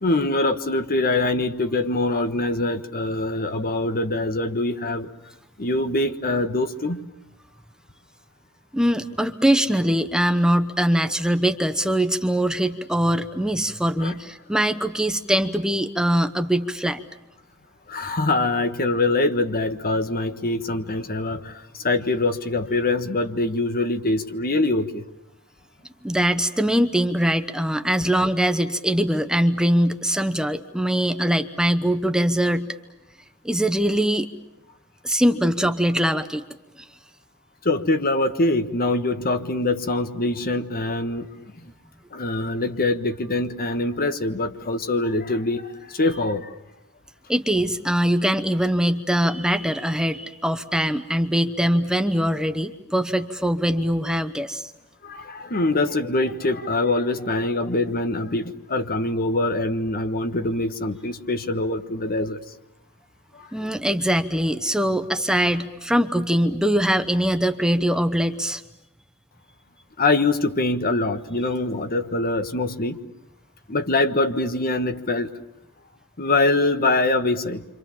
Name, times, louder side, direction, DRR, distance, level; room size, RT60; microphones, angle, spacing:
voice 1, 0.0-5.1 5.6-7.1 14.0-14.1 17.9-25.0 37.6-41.7 42.1-46.5 55.0-62.4 63.3-63.5 70.0-73.0 73.7-75.3 76.2-77.6, left 2 dB, 45° left, 9 dB, 1.4 m, -24 dB
voice 2, 8.7-17.0 26.0-32.8 33.4-34.3 35.0-36.4 36.8-36.9 47.3-54.7 63.5-68.6, equal, 5° right, 7 dB, 0.9 m, -22 dB
29.0 x 26.0 x 7.3 m, 0.92 s
head